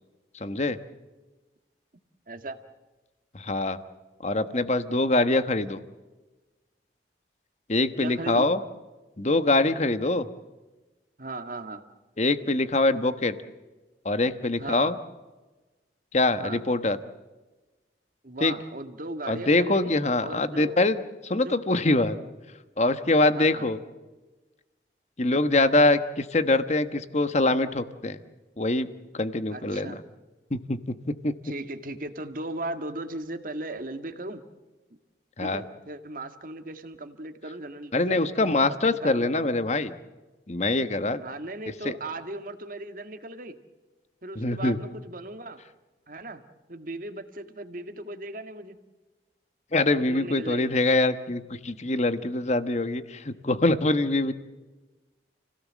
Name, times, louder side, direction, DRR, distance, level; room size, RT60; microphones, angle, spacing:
voice 1, 0.3-0.8 3.3-3.8 4.2-5.8 7.7-8.6 9.2-10.3 12.2-13.3 14.0-14.9 16.1-17.0 18.4-18.5 19.3-21.0 21.2-22.2 22.8-23.8 25.2-28.2 28.6-28.9 29.1-30.0 30.5-30.8 31.2-31.3 35.4-35.6 37.9-39.9 40.5-41.2 41.8-41.9 44.4-44.8 49.7-54.3, left 2 dB, 40° left, 11 dB, 1.2 m, -24 dB
voice 2, 2.3-2.6 8.0-8.5 11.2-11.8 14.6-14.9 16.4-16.6 18.2-20.8 21.4-21.6 22.9-23.7 26.3-26.4 29.5-30.0 31.4-34.4 35.4-39.5 41.2-43.6 44.2-45.6 46.1-46.4 46.7-48.8 50.0-50.7, right 2 dB, 50° right, 8 dB, 1.8 m, -37 dB
29.5 x 17.0 x 7.5 m, 1.2 s
head